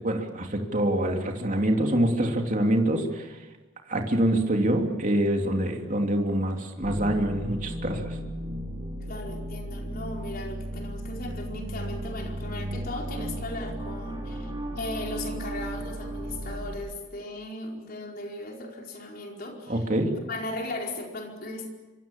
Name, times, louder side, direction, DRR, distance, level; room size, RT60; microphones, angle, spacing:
voice 1, 0.0-3.3 3.9-8.1 19.7-20.1, right 1 dB, 40° right, 2 dB, 3.2 m, -25 dB
sound 1, 6.8-16.8, right 1 dB, 25° right, 5.9 m, -35 dB
voice 2, 9.1-19.9 20.2-21.7, left 2 dB, 45° left, 1 dB, 4.8 m, -37 dB
25.5 x 25.0 x 7.4 m, 1.2 s
head